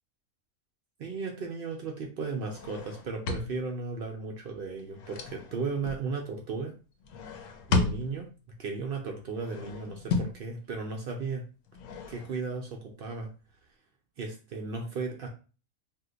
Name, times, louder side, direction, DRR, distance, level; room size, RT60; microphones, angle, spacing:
voice 1, 1.0-6.7 7.7-8.3 8.6-11.4 12.1-13.3 14.2-15.3, right 4 dB, 65° right, 2 dB, 0.5 m, -35 dB
sound 1, 2.5-3.9 4.7-6.0 7.0-8.4 9.3-10.5 11.7-12.6, left 4 dB, 70° left, 0.9 m, -34 dB
2.7 x 2.1 x 3.7 m, 0.35 s
omnidirectional pair, 1.4 m